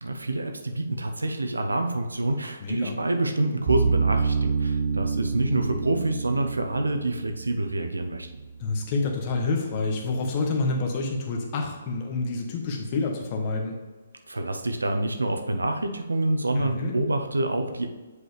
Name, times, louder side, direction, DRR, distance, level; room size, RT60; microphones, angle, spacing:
voice 1, 0.0-8.3 14.3-17.9, right 2 dB, 90° right, 5 dB, 0.7 m, -27 dB
voice 2, 2.6-3.0 8.6-13.8 16.6-17.0, left 3 dB, 35° left, 1 dB, 1.3 m, -28 dB
sound 1, 3.7-8.8, right 5 dB, 50° right, 0.8 m, -28 dB
7.6 x 4.8 x 3.4 m, 1.3 s
figure-of-eight pair, 135°, 0 cm